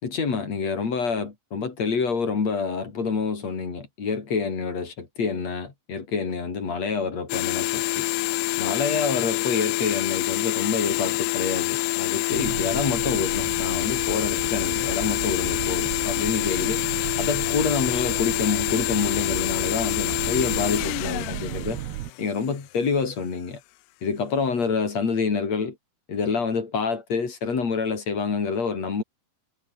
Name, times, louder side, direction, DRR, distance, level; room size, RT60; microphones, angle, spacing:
voice 1, 0.0-8.1 8.6-16.8 17.2-21.8 22.2-23.6 24.0-25.8 26.1-29.0, left 5 dB, 45° left, 4.8 m, -27 dB
sound 1, 7.3-22.5, left 23 dB, 90° left, 2.7 m, -26 dB
sound 2, 12.3-22.1, right 15 dB, 85° right, 3.2 m, -34 dB
omnidirectional pair, 4.6 m